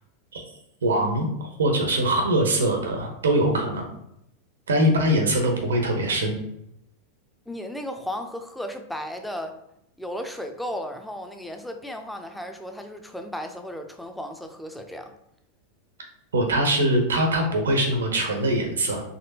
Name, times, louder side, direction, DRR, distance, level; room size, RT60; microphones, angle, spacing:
voice 1, 0.8-3.8 4.7-6.4 16.3-19.0, right 1 dB, 90° right, 3 dB, 0.9 m, -22 dB
voice 2, 7.5-9.6 10.0-15.1, equal, 5° left, 5 dB, 0.5 m, -35 dB
4.2 x 3.0 x 2.8 m, 0.80 s
hypercardioid pair, 100°, 0 cm